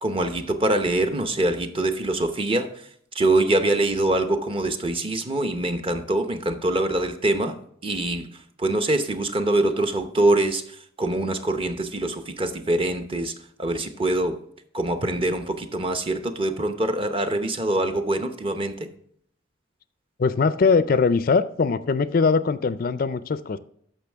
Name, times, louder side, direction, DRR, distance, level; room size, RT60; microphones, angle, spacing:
voice 1, 0.0-2.9 3.1-7.6 7.8-13.3 13.6-14.4 14.7-18.9, right 2 dB, 30° right, 0.8 m, -24 dB
voice 2, 20.2-23.6, left 4 dB, 45° left, 0.4 m, -21 dB
13.5 x 5.6 x 3.4 m
head